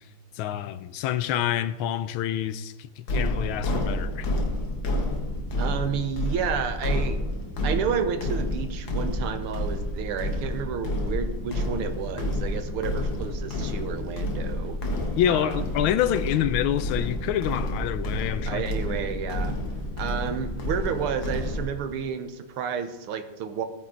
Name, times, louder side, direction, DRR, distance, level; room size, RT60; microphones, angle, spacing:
voice 1, 0.4-4.3 15.2-18.6, left 11 dB, 75° left, 1.4 m, -27 dB
sound 1, 3.1-21.6, left 1 dB, 60° left, 2.1 m, -29 dB
voice 2, 5.6-7.2 7.6-14.8 15.3-15.6 18.5-19.6 20.0-23.6, right 7 dB, 85° right, 1.8 m, -31 dB
16.0 x 9.3 x 3.9 m
omnidirectional pair, 2.4 m